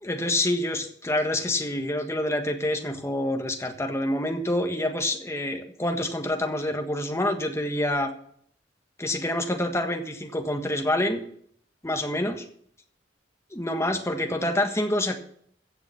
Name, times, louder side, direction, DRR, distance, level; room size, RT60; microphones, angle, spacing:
voice 1, 0.0-8.1 9.0-11.2 11.8-12.4 13.5-15.2, left 1 dB, 15° left, 5 dB, 1.5 m, -27 dB
15.5 x 7.0 x 6.9 m, 0.64 s
head